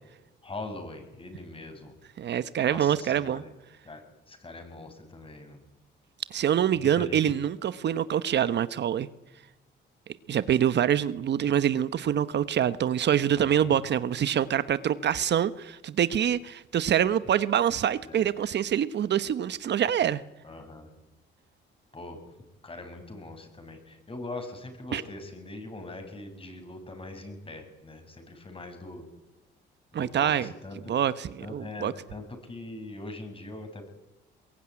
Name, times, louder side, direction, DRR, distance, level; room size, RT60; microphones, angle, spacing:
voice 1, 0.4-1.9 2.6-3.5 3.8-5.7 6.7-7.3 13.3-13.7 18.1-18.3 20.4-20.9 21.9-22.2 22.6-29.1 29.9-30.9 31.4-33.9, left 2 dB, 25° left, 7 dB, 7.1 m, -42 dB
voice 2, 2.2-3.4 6.3-9.1 10.3-20.2 24.9-25.0 29.9-30.5 30.9-31.9, right 9 dB, 60° right, 15 dB, 1.1 m, -25 dB
22.5 x 21.5 x 9.8 m, 0.99 s
cardioid pair, 90°, 20 cm